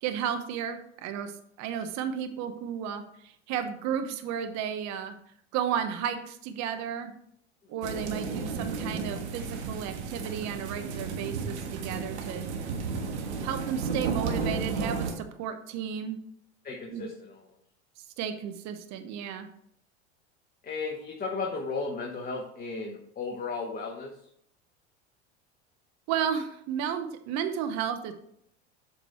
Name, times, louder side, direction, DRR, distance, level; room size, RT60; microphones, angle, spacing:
voice 1, 0.0-1.3 1.6-5.1 5.5-7.1 7.7-12.5 13.4-16.2 16.9-17.0 18.2-19.5 26.1-28.1, right 8 dB, 55° right, 8 dB, 1.2 m, -33 dB
sound 1, 7.8-15.1, right 4 dB, 80° right, 1.5 m, -33 dB
voice 2, 16.6-17.4 20.6-24.1, left 4 dB, 25° left, 0 dB, 1.4 m, -35 dB
7.7 x 5.2 x 4.4 m, 0.67 s
hypercardioid pair, 90°, 34 cm